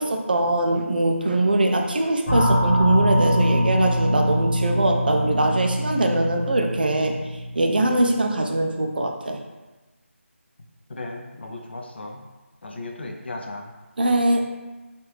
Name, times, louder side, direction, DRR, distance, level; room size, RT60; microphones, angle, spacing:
voice 1, 0.0-7.1 7.6-9.4 14.0-14.5, right 1 dB, 45° right, 2 dB, 0.4 m, -22 dB
sound 1, 2.3-8.6, equal, 20° left, 0.8 m, -23 dB
voice 2, 10.9-12.2 12.6-13.7, left 2 dB, 55° left, 1 dB, 0.5 m, -35 dB
3.1 x 2.4 x 3.1 m, 1.2 s
figure-of-eight pair, 165°, 7 cm